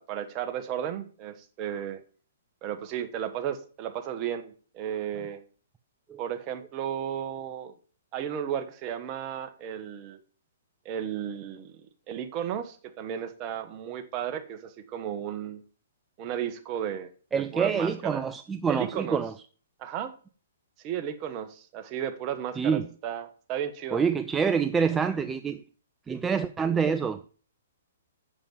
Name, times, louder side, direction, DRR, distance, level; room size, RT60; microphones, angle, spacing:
voice 1, 0.0-2.0 2.6-5.4 6.2-7.7 8.1-10.2 10.8-11.8 12.1-15.6 16.2-18.2 18.7-19.2 19.8-20.1 20.8-24.0, right 9 dB, 35° right, 1.4 m, -34 dB
voice 2, 17.3-19.3 22.6-22.9 23.9-25.6 26.1-27.2, right 6 dB, 15° right, 0.5 m, -26 dB
7.3 x 6.9 x 7.2 m
hypercardioid pair, 125°, 0 cm